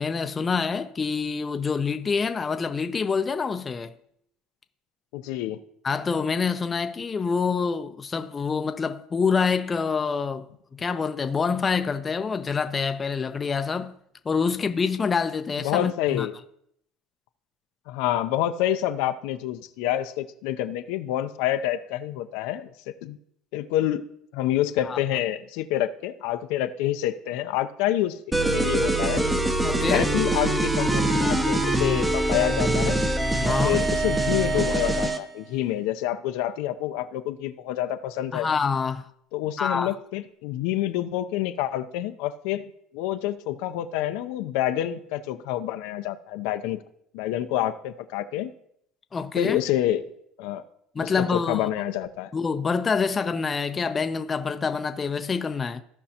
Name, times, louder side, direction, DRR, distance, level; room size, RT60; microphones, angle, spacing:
voice 1, 0.0-3.9 5.8-10.5 10.7-14.0 14.3-16.3 24.8-25.0 29.6-30.0 33.4-33.9 38.3-39.0 39.6-39.9 49.1-49.6 50.9-51.7 52.3-55.8, left 5 dB, 25° left, 0.5 m, -26 dB
voice 2, 5.1-5.6 15.6-16.3 17.9-23.2 23.5-24.1 24.3-29.3 29.8-33.0 33.6-38.5 39.3-42.7 42.9-46.8 47.1-48.5 49.4-50.0 50.4-50.6 51.0-52.3, left 12 dB, 75° left, 0.6 m, -27 dB
sound 1, 28.3-35.2, right 1 dB, 10° right, 0.7 m, -23 dB
15.5 x 5.4 x 2.9 m
supercardioid pair, 125°, 0 cm